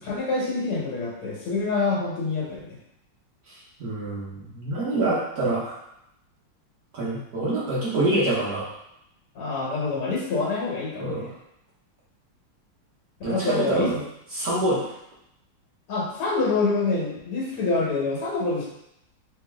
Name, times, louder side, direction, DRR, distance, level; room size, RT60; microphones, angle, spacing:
voice 1, 0.0-2.6 9.4-11.3 13.3-13.9 15.9-18.6, left 3 dB, 80° left, -4 dB, 2.1 m, -26 dB
voice 2, 3.5-5.8 6.9-8.7 11.0-11.3 13.2-14.0 14.3-14.8, right 2 dB, 55° right, -7 dB, 1.3 m, -26 dB
4.1 x 2.8 x 3.5 m, 0.80 s
omnidirectional pair, 2.3 m